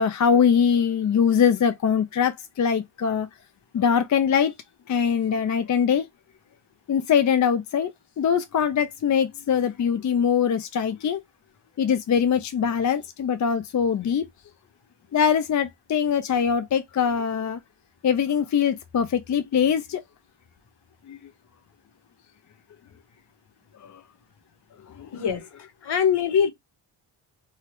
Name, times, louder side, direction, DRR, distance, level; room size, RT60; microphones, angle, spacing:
voice 1, 0.0-3.3 3.7-4.5 4.9-6.1 6.9-7.9 8.2-11.2 11.8-14.3 15.1-17.6 18.0-20.0 21.1-21.2 23.8-23.9 25.0-25.2, left 7 dB, 40° left, 0.4 m, -22 dB
voice 2, 25.1-25.4 25.8-26.5, left 7 dB, 55° left, 0.9 m, -22 dB
2.8 x 2.3 x 3.2 m
cardioid pair, 60°, 48 cm